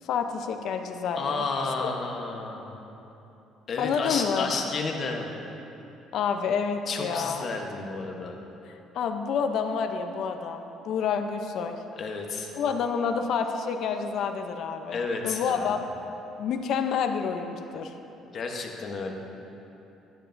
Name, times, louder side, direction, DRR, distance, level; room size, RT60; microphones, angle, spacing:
voice 1, 0.0-1.5 1.8-1.9 3.8-4.5 6.1-7.4 8.9-11.7 12.6-15.0 15.2-15.8 16.4-18.0, left 6 dB, 55° left, 6 dB, 0.5 m, -28 dB
voice 2, 1.1-2.8 3.7-5.3 6.9-8.4 12.0-12.5 14.9-15.9 18.3-19.1, left 4 dB, 40° left, 2 dB, 0.9 m, -32 dB
13.5 x 9.2 x 2.6 m, 3.0 s
cardioid pair, 155°, 0 cm